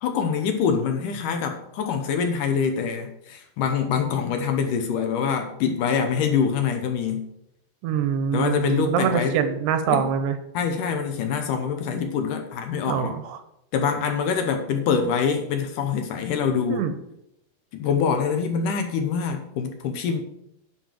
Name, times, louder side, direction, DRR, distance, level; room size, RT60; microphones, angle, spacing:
voice 1, 0.0-7.3 8.3-9.4 9.9-10.1 10.5-13.2 13.7-16.9 17.7-20.2, left 6 dB, 75° left, 5 dB, 2.0 m, -25 dB
voice 2, 7.8-10.4 12.9-13.4 16.7-17.0, right 8 dB, 85° right, 10 dB, 3.0 m, -24 dB
10.5 x 4.4 x 7.4 m, 0.79 s
omnidirectional pair, 4.7 m